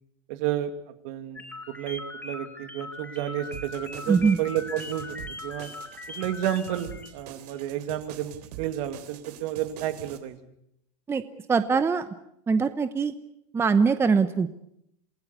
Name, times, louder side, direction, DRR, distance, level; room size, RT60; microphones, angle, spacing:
voice 1, 0.3-5.7 6.1-10.4, right 11 dB, 55° right, 9 dB, 2.5 m, -31 dB
sound 1, 1.4-7.1, left 2 dB, 10° left, 3.9 m, -40 dB
sound 2, 3.5-10.2, right 10 dB, 75° right, 3.5 m, -45 dB
voice 2, 11.5-12.1 12.5-13.1 13.5-14.5, right 5 dB, 10° right, 11 dB, 0.9 m, -22 dB
28.0 x 17.0 x 8.3 m, 0.75 s
supercardioid pair, 145°, 20 cm